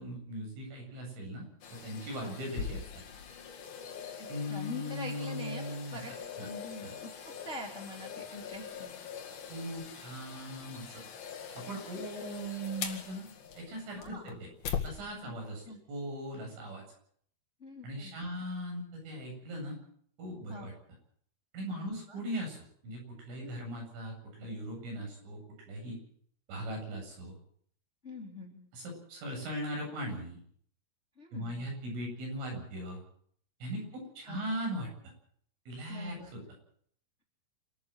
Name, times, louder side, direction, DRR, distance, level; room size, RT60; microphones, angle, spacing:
voice 1, 0.0-2.8 4.3-6.0 6.4-6.5 6.8-6.9 9.5-11.0 11.6-13.3 13.6-14.5 14.8-16.8 17.8-19.8 20.2-20.7 21.5-26.0 26.5-27.4 28.7-30.4 31.3-33.0 33.6-35.1 35.7-36.4, equal, 70° right, 1 dB, 10.5 m, -39 dB
sound 1, 1.6-14.9 15.4-15.5, left 7 dB, 55° left, 3.4 m, -42 dB
voice 2, 2.1-2.4 4.2-6.1 6.4-8.9 14.0-14.4 15.2-15.3 15.6-15.8 17.6-18.4 20.5-20.7 21.7-22.2 23.4-23.6 28.0-28.6 31.2-31.6 34.2-34.5 35.9-36.3, left 2 dB, 20° left, 1 dB, 2.4 m, -45 dB
28.5 x 13.0 x 7.8 m, 0.63 s
omnidirectional pair, 6.0 m